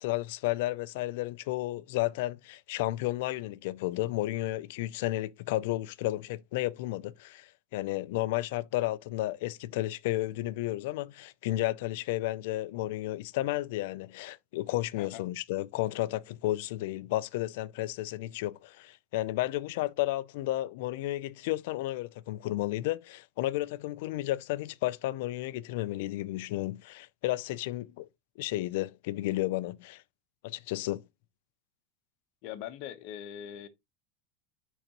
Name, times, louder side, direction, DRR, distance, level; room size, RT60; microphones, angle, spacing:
voice 1, 0.0-28.1 28.4-30.0 30.4-31.0, left 16 dB, 65° left, 0.4 m, -32 dB
voice 2, 32.4-33.7, left 10 dB, 50° left, 1.0 m, -41 dB
10.0 x 4.0 x 3.0 m
supercardioid pair, 160°, 0 cm